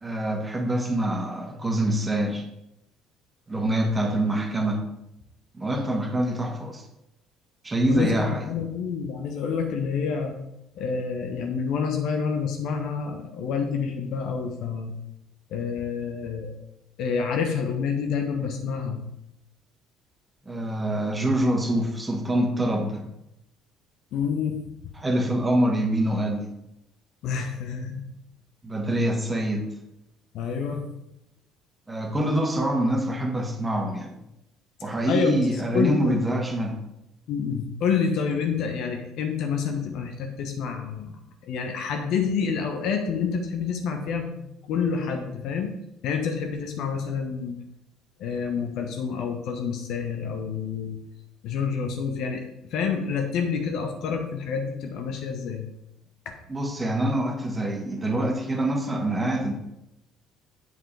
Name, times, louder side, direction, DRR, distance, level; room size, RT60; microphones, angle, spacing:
voice 1, 0.0-2.4 3.5-4.8 5.5-6.8 7.6-8.4 20.4-23.0 25.0-26.5 28.6-29.7 31.9-34.1 34.8-36.8 56.5-59.5, right 1 dB, 20° right, 2 dB, 1.7 m, -25 dB
voice 2, 7.9-10.4 10.7-14.9 15.5-16.5 17.0-19.0 24.1-24.9 27.2-28.0 30.3-30.8 35.1-35.5 35.7-36.3 37.3-41.2 41.4-45.7 46.0-47.6 48.2-51.0 51.4-52.4 52.7-55.7 56.2-56.3, left 6 dB, 55° left, 4 dB, 1.1 m, -28 dB
8.1 x 7.3 x 3.4 m, 0.85 s
figure-of-eight pair, 55°, 0 cm